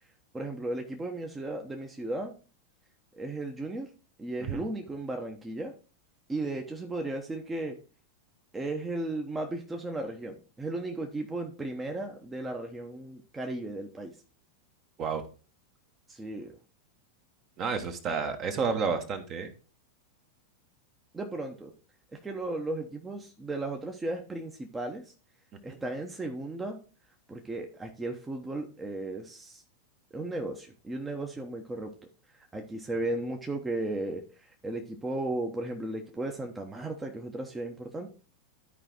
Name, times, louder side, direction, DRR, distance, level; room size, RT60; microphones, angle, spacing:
voice 1, 0.3-2.3 3.1-3.9 4.2-5.7 6.3-7.8 8.5-14.1 16.1-16.5 21.1-21.7 22.1-25.0 25.6-26.8 27.3-29.6 30.1-31.9 32.3-38.1, right 2 dB, 10° right, 2 dB, 0.9 m, -35 dB
voice 2, 17.6-19.5 25.7-25.8, right 5 dB, 35° right, 7 dB, 1.2 m, -30 dB
13.0 x 4.9 x 2.9 m, 0.36 s
figure-of-eight pair, 90°, 0 cm